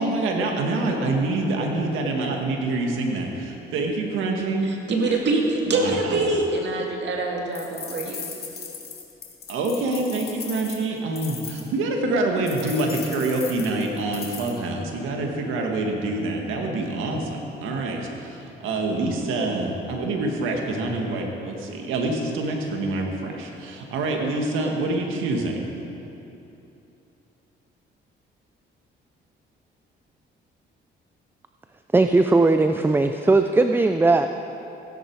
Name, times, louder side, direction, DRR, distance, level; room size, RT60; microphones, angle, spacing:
voice 1, 0.0-4.7 5.7-6.3 9.5-25.6, right 2 dB, 90° right, 1 dB, 1.8 m, -26 dB
voice 2, 4.6-8.2, right 2 dB, 65° right, 0 dB, 2.2 m, -24 dB
sound 1, 7.5-11.7 12.5-14.6, left 6 dB, 55° left, 2.0 m, -38 dB
voice 3, 31.9-34.3, right 3 dB, 10° right, 7 dB, 0.4 m, -18 dB
16.0 x 10.5 x 4.7 m, 2.9 s
cardioid pair, 90°, 20 cm